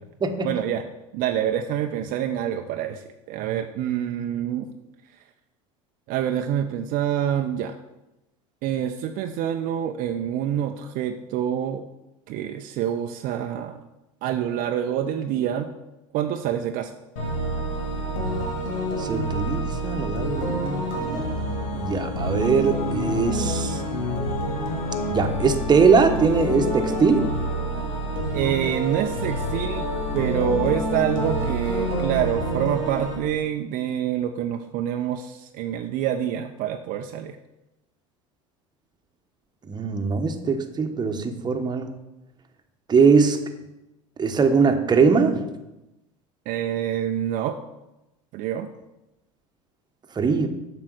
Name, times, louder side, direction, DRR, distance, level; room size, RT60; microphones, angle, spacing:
voice 1, 0.4-0.8 1.1-4.7 6.1-7.8 8.6-11.8 12.3-13.8 14.2-15.7 16.1-16.9 28.3-37.4 46.5-47.6 48.3-48.7, right 10 dB, 55° right, 6 dB, 0.6 m, -26 dB
sound 1, 17.2-33.2, equal, 75° left, 2.4 m, -27 dB
voice 2, 19.0-21.3 21.7-23.8 25.1-27.3 39.7-41.9 42.9-43.4 44.2-45.4 50.1-50.5, right 5 dB, 25° right, 5 dB, 1.2 m, -21 dB
7.5 x 6.2 x 6.3 m, 0.97 s
hypercardioid pair, 80°, 17 cm